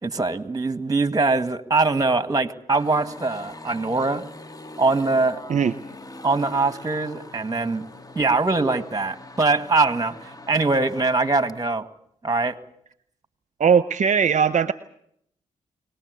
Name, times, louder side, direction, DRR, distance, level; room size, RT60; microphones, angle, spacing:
voice 1, 0.0-4.2 4.8-5.4 6.2-7.9 8.2-11.9 12.2-12.6, right 3 dB, 25° right, 11 dB, 1.9 m, -22 dB
sound 1, 2.7-11.6, left 2 dB, 25° left, 1.7 m, -42 dB
voice 2, 13.6-14.7, right 7 dB, 60° right, 13 dB, 0.9 m, -19 dB
24.0 x 19.0 x 8.3 m, 0.71 s
cardioid pair, 55°, 14 cm